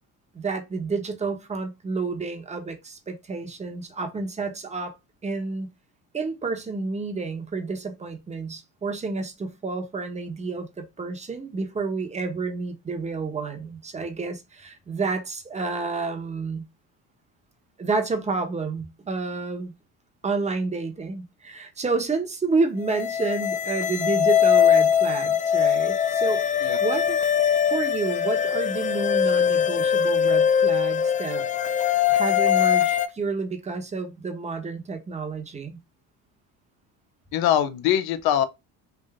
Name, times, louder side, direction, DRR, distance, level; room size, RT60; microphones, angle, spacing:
voice 1, 0.3-5.0 5.2-5.7 6.1-16.6 17.8-19.7 20.2-26.4 26.8-27.2 27.7-31.5 32.1-35.8, right 4 dB, 20° right, 0.9 m, -29 dB
sound 1, 22.9-33.1, left 8 dB, 25° left, 0.3 m, -22 dB
voice 2, 37.3-38.5, left 10 dB, 75° left, 0.7 m, -22 dB
3.4 x 2.6 x 3.5 m
cardioid pair, 115°, 37 cm